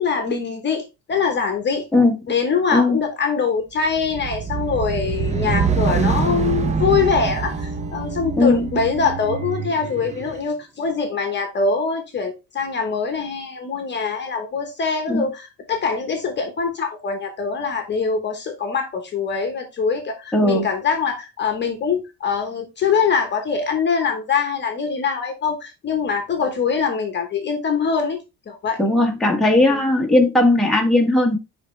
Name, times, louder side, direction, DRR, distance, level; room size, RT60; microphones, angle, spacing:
voice 1, 0.0-1.8 2.3-28.2 28.5-28.8 29.6-29.8, left 5 dB, 35° left, 6 dB, 1.1 m, -23 dB
sound 1, 3.9-10.4, right 5 dB, 20° right, 0.6 m, -25 dB
voice 2, 20.3-20.7 28.8-31.4, left 2 dB, ahead, -1 dB, 1.3 m, -17 dB
9.9 x 3.5 x 3.2 m, 0.25 s
cardioid pair, 155°, 33 cm